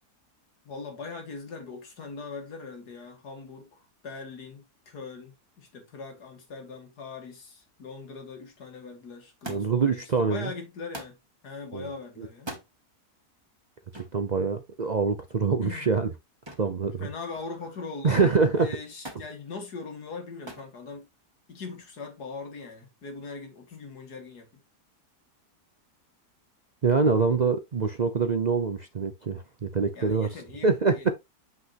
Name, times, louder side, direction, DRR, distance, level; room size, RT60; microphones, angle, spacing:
voice 1, 0.6-11.2 11.4-12.6 15.5-15.9 17.0-21.1 21.5-24.5 29.9-31.1, left 4 dB, 90° left, 2.5 m, -41 dB
Thump thud, 9.4-9.9 10.9-11.2 12.3-12.7 13.9-14.2 16.5-16.8 17.1-17.7 19.0-19.3 20.5-20.7 21.7-22.2 23.1-23.2, right 1 dB, 15° right, 1.5 m, -42 dB
voice 2, 9.5-10.5 11.7-11.9 12.2-12.3 14.1-16.1 16.6-17.1 18.0-18.7 26.8-30.3 30.6-31.1, right 4 dB, 60° right, 0.4 m, -25 dB
8.0 x 5.6 x 2.9 m
omnidirectional pair, 1.7 m